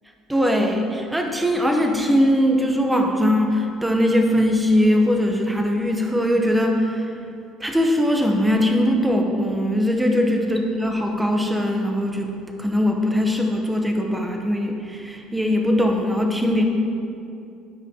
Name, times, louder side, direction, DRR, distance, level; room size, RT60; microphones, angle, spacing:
voice 1, 0.3-7.1 7.6-12.3 12.6-16.6, equal, 5° right, 2 dB, 0.8 m, -20 dB
12.0 x 9.9 x 2.8 m, 2.6 s
cardioid pair, 170°, 0 cm